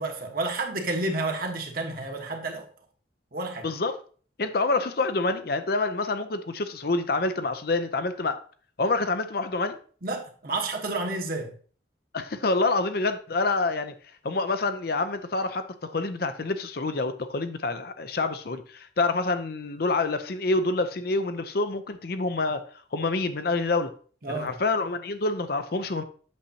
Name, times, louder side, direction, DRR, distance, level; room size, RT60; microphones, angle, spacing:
voice 1, 0.0-2.7 3.3-3.6 10.0-11.5 24.2-24.5, right 2 dB, 50° right, 1.3 m, -30 dB
voice 2, 3.6-4.0 4.4-8.4 8.8-9.8 12.1-13.9 14.2-23.9 24.3-26.0, left 3 dB, 55° left, 0.6 m, -27 dB
8.4 x 6.4 x 2.8 m
head